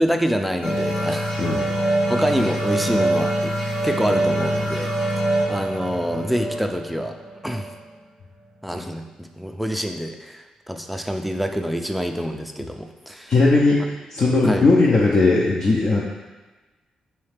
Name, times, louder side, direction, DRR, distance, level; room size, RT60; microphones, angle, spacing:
voice 1, 0.0-1.7 1.9-3.5 3.8-4.9 5.5-7.2 7.4-7.7 8.6-13.3 14.4-14.6, equal, ahead, 4 dB, 0.4 m, -26 dB
sound 1, 0.6-7.9, right 1 dB, 80° left, 1.5 m, -24 dB
voice 2, 13.3-13.8 14.1-16.0, left 3 dB, 50° left, -4 dB, 0.5 m, -17 dB
4.2 x 2.8 x 3.3 m, 1.2 s
cardioid pair, 70°, 2 cm